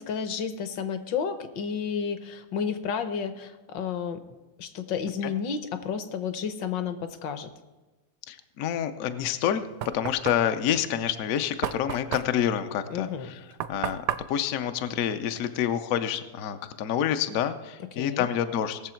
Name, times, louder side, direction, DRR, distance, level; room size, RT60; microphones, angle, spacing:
voice 1, 0.0-4.2 4.6-7.5 12.9-13.3 17.9-18.3, left 6 dB, 65° left, 10 dB, 1.4 m, -31 dB
voice 2, 8.3-9.7 9.9-13.3 13.7-14.0 14.3-18.8, left 9 dB, 85° left, 9 dB, 0.7 m, -28 dB
Knock, 9.3-15.7, right 11 dB, 75° right, 0.9 m, -36 dB
18.5 x 7.0 x 4.4 m, 1.2 s
omnidirectional pair, 2.3 m